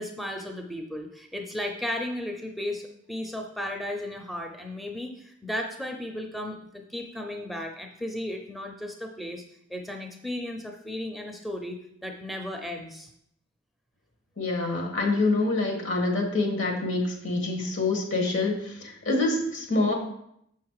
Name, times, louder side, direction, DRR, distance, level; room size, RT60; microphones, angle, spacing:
voice 1, 0.0-9.4 9.7-13.1, left 1 dB, ahead, 2 dB, 0.6 m, -35 dB
voice 2, 14.4-19.9, left 2 dB, 70° left, 2 dB, 1.8 m, -26 dB
6.7 x 5.8 x 4.8 m, 0.74 s
head